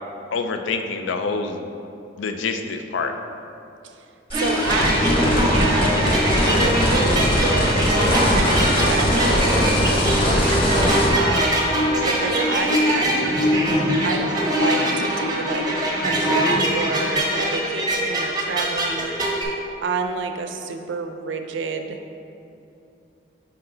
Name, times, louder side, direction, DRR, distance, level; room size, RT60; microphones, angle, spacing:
voice 1, 0.3-1.6 2.2-3.2, left 4 dB, 85° left, 7 dB, 0.4 m, -26 dB
sound 1, 4.3-11.1, equal, 30° left, 0.8 m, -21 dB
sound 2, 4.3-19.4, equal, 20° right, 0.7 m, -22 dB
voice 2, 4.3-10.6 11.2-13.4 14.0-15.6 16.0-19.1 19.8-22.0, right 4 dB, 80° right, 6 dB, 0.5 m, -29 dB
5.9 x 4.3 x 3.9 m, 2.7 s
head